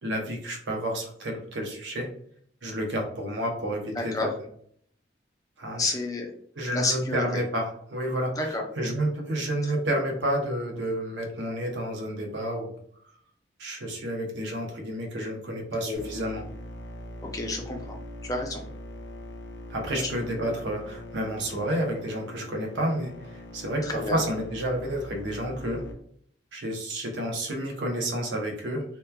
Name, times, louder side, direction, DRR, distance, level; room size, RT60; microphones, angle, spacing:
voice 1, 0.0-2.1 2.6-4.3 5.6-5.9 6.6-12.7 13.6-16.4 19.7-25.8 26.5-28.8, right 1 dB, 80° right, 1 dB, 0.7 m, -30 dB
voice 2, 3.9-4.3 5.8-6.3 6.7-7.4 8.4-8.6 9.6-9.7 15.9-16.0 17.2-18.0 18.2-18.6 20.0-20.1 20.4-20.5 23.8-24.2, left 2 dB, 20° left, 1 dB, 0.4 m, -30 dB
sound 1, 15.9-25.9, left 1 dB, 75° left, 0.5 m, -42 dB
2.9 x 2.2 x 2.2 m, 0.63 s
head